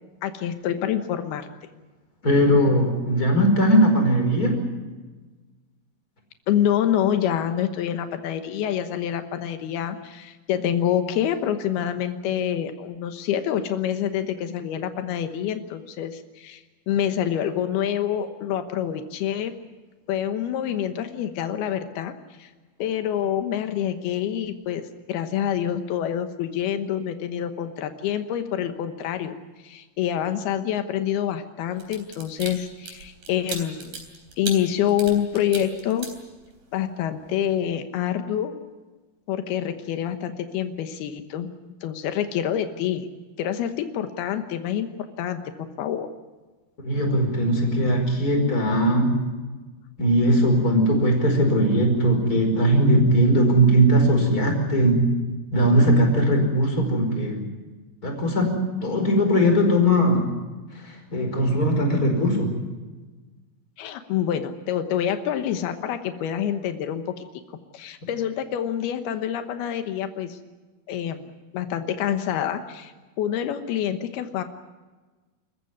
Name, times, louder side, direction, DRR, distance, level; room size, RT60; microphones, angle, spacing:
voice 1, 0.2-1.5 6.5-19.5 20.1-22.5 22.8-29.4 29.6-34.0 34.4-36.1 36.7-38.6 39.3-41.5 41.8-43.1 43.4-44.9 45.2-46.1 63.8-67.0 67.7-70.4 70.9-71.2 71.5-74.4, left 10 dB, 90° left, 8 dB, 3.2 m, -27 dB
voice 2, 2.2-4.6 46.8-49.2 50.0-55.1 55.5-57.4 58.0-60.3 60.7-62.5, equal, 25° left, 3 dB, 5.3 m, -19 dB
sound 1, 31.8-36.8 37.2-37.4, right 4 dB, 70° right, 5.4 m, -37 dB
27.5 x 14.5 x 9.5 m, 1.3 s
omnidirectional pair, 4.3 m